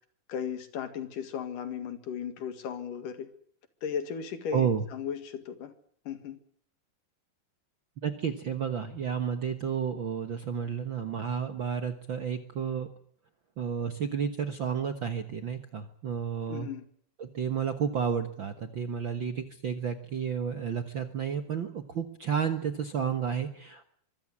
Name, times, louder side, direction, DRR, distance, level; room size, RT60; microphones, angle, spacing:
voice 1, 0.3-3.3 3.8-5.7 6.1-6.4 16.5-16.8, left 7 dB, 70° left, 10 dB, 3.5 m, -36 dB
voice 2, 4.5-4.8 8.0-12.9 13.6-16.7 17.2-23.9, right 7 dB, 55° right, 8 dB, 1.4 m, -31 dB
24.5 x 15.0 x 9.9 m, 0.62 s
omnidirectional pair, 4.0 m